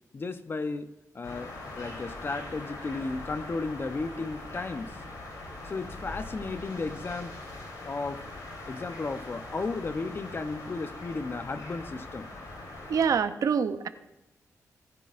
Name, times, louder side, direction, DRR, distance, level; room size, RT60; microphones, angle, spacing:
voice 1, 0.1-0.9 1.1-5.0 5.6-7.4 7.8-8.3 8.7-12.3, left 3 dB, 40° left, 10 dB, 0.8 m, -34 dB
sound 1, 1.2-13.2, left 2 dB, 85° left, 3.8 m, -42 dB
voice 2, 12.9-13.9, right 6 dB, 70° right, 11 dB, 0.7 m, -25 dB
18.0 x 10.0 x 2.6 m, 0.96 s
cardioid pair, 85°, 6 cm